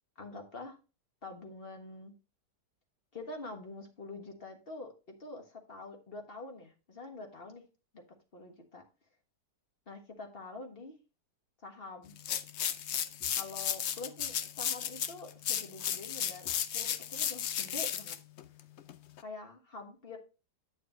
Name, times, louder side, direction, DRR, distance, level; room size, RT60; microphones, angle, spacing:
voice 1, 0.1-0.8 1.2-2.1 3.1-4.9 5.2-7.6 7.9-8.0 8.3-8.8 9.9-11.0 11.6-12.1 13.3-18.2 19.2-20.2, left 3 dB, 35° left, 3 dB, 1.6 m, -46 dB
sound 1, 12.2-19.2, left 9 dB, 90° left, 0.6 m, -34 dB
9.5 x 6.5 x 3.1 m, 0.31 s
omnidirectional pair, 1.9 m